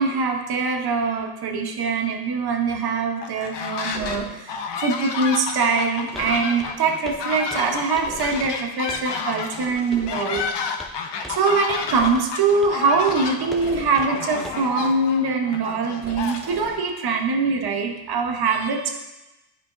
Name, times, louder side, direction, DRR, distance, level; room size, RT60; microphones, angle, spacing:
voice 1, 0.0-4.5 4.8-10.6 11.3-18.9, right 4 dB, 55° right, 3 dB, 1.0 m, -23 dB
sound 1, 3.2-4.2 4.5-16.8, left 5 dB, 65° left, 0.7 m, -31 dB
sound 2, 3.9-4.3 6.1-6.4 8.0-8.5 9.4-10.2 11.7-12.2 13.5-14.1 16.0-16.8, right 1 dB, 20° right, 1.7 m, -38 dB
Walk footsteps, 6.1-6.3 6.6-6.8 7.0-7.2 7.5-8.2 8.4-8.6 8.9-9.1 9.9-10.1 10.3-11.0 11.2-11.4 11.7-11.8 12.1-12.3 12.6-12.8 13.1-13.2 13.5-13.7 14.0-14.1 14.4-14.7, equal, ahead, 0.6 m, -40 dB
8.9 x 5.1 x 2.6 m, 1.0 s
cardioid pair, 90°, 45 cm